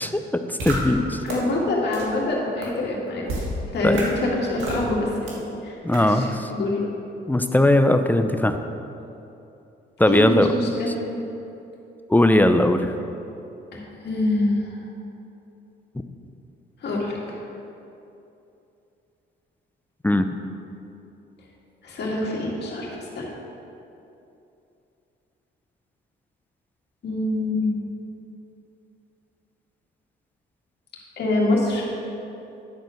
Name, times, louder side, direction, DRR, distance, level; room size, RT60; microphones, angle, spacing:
voice 1, 0.0-1.2 3.8-4.0 5.8-6.5 7.3-8.6 10.0-10.5 12.1-12.9 20.0-20.3, left 1 dB, 10° left, 8 dB, 0.5 m, -19 dB
sound 1, 0.6-0.7 1.3-1.4 1.9-2.0 2.6-2.7 3.3-3.4 3.9-4.0 4.6-4.8 5.3-5.4 5.9-6.0, right 3 dB, 90° right, 1.8 m, -29 dB
voice 2, 1.2-3.3 3.7-6.9 10.1-10.9 13.7-14.8 16.8-17.5 21.8-23.3 27.0-27.7 31.2-31.9, left 2 dB, 60° left, -3 dB, 2.2 m, -25 dB
10.5 x 4.4 x 6.3 m, 2.8 s
cardioid pair, 90°, 20 cm